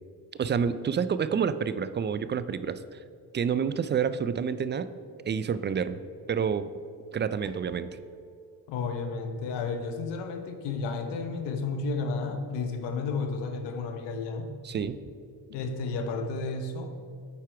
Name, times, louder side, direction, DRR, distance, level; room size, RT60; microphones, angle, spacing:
voice 1, 0.4-3.0 3.3-4.9 5.3-6.0 6.3-6.7 7.1-7.9 14.6-15.0, right 7 dB, 30° right, 14 dB, 0.3 m, -28 dB
sound 1, 7.4-9.4, right 2 dB, 10° left, 1.5 m, -49 dB
voice 2, 8.7-14.5 15.5-16.9, left 4 dB, 85° left, 6 dB, 0.9 m, -32 dB
8.5 x 4.5 x 4.7 m, 2.3 s
supercardioid pair, 65°, 41 cm